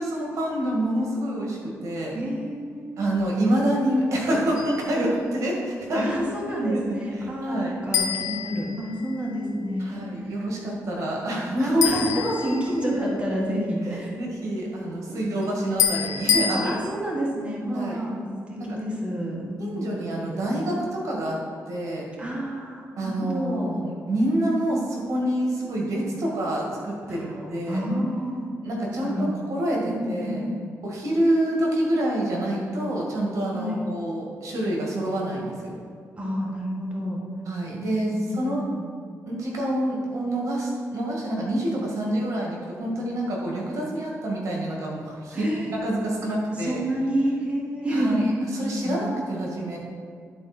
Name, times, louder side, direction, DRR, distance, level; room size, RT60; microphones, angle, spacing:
voice 1, 0.0-2.1 3.0-6.1 6.5-6.8 7.2-7.7 9.8-11.8 12.2-12.5 14.2-16.8 17.7-18.0 18.6-18.8 19.6-21.4 21.7-22.1 23.0-27.8 28.6-30.5 30.8-35.8 37.5-38.6 39.3-46.8 47.9-48.2 48.5-49.8, right 1 dB, 65° right, -2 dB, 1.8 m, -27 dB
voice 2, 2.1-3.1 5.9-10.0 11.6-14.1 15.1-15.2 16.6-20.0 22.2-23.8 27.1-27.4 27.7-28.5 28.9-29.4 29.8-30.7 33.5-33.8 36.2-37.2 37.9-38.9 45.3-45.9 46.5-49.5, equal, 20° right, -3 dB, 1.6 m, -29 dB
sound 1, 4.6-5.0 7.9-9.3 11.8-13.1 15.8-16.6, left 8 dB, 85° left, 0.7 m, -26 dB
11.0 x 4.1 x 4.3 m, 2.2 s
cardioid pair, 95°, 6 cm